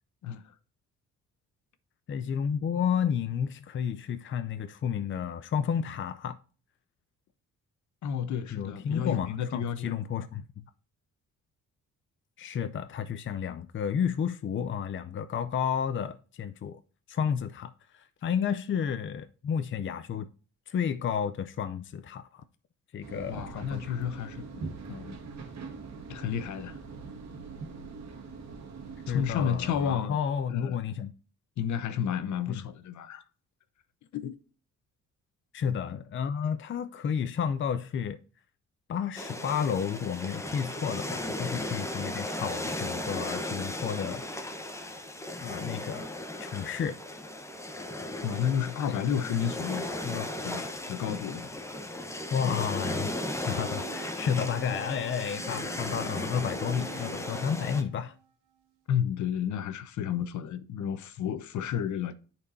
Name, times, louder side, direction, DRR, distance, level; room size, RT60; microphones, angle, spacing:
voice 1, 2.1-6.4 8.5-10.6 12.4-16.8 17.1-20.3 20.7-22.4 22.9-24.0 29.1-31.1 32.5-32.6 35.5-38.2 38.9-44.2 44.7-44.9 45.4-46.1 46.4-47.0 50.0-50.3 52.3-53.1 53.5-58.1, left 7 dB, 40° left, 0.6 m, -31 dB
voice 2, 8.0-9.9 23.3-25.1 26.1-26.8 29.1-30.2 30.5-30.8 31.6-33.2 34.1-34.3 48.2-50.1 50.4-51.5 58.9-62.1, left 8 dB, 70° left, 0.9 m, -31 dB
sound 1, 23.0-29.9, right 4 dB, 60° right, 1.6 m, -43 dB
sound 2, 39.2-57.8, left 1 dB, 10° left, 1.0 m, -36 dB
sound 3, 53.6-58.7, right 12 dB, 85° right, 1.0 m, -49 dB
9.8 x 4.5 x 2.7 m
cardioid pair, 90°, 30 cm